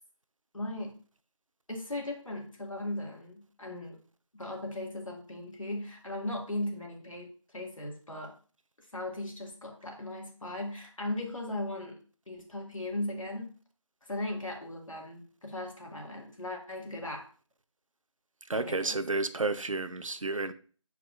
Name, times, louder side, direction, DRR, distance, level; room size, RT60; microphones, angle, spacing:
voice 1, 0.5-1.0 1.7-4.0 4.3-8.3 8.9-12.0 12.3-13.5 14.1-17.2 18.5-19.0, left 1 dB, 80° left, 2.1 m, -37 dB
voice 2, 18.5-20.5, right 3 dB, 85° right, 0.7 m, -31 dB
8.4 x 4.7 x 2.5 m
figure-of-eight pair, 175°, 17 cm